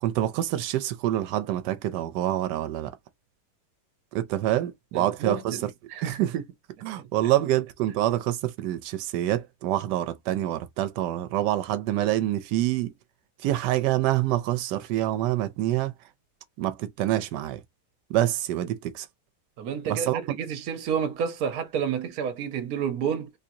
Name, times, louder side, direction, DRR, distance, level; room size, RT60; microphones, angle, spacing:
voice 1, 0.0-2.9 4.1-5.7 6.0-6.4 6.8-12.9 13.4-15.9 16.6-17.6 18.1-19.1 19.9-20.4, right 13 dB, 90° right, 1.2 m, -26 dB
voice 2, 4.9-5.6 5.9-6.3 7.0-7.1 19.6-23.3, right 7 dB, 65° right, 1.2 m, -30 dB
3.6 x 2.8 x 2.6 m
omnidirectional pair, 1.8 m